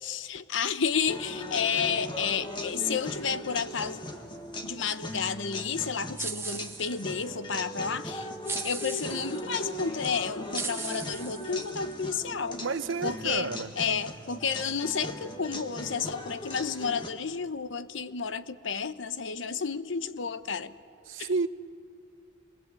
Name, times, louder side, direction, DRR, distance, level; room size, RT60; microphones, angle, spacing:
voice 1, 0.0-4.0 4.6-8.3 8.6-12.6 13.0-20.7 21.2-21.3, left 6 dB, 80° left, 0.9 m, -31 dB
sound 1, 1.1-17.1, left 1 dB, 25° left, 1.7 m, -39 dB
sound 2, 6.2-7.3 8.4-9.4 10.0-10.1 10.5-11.9, right 5 dB, 15° right, 0.9 m, -37 dB
voice 2, 12.6-13.7 21.1-21.5, right 4 dB, 90° right, 0.9 m, -30 dB
27.5 x 22.5 x 8.4 m
head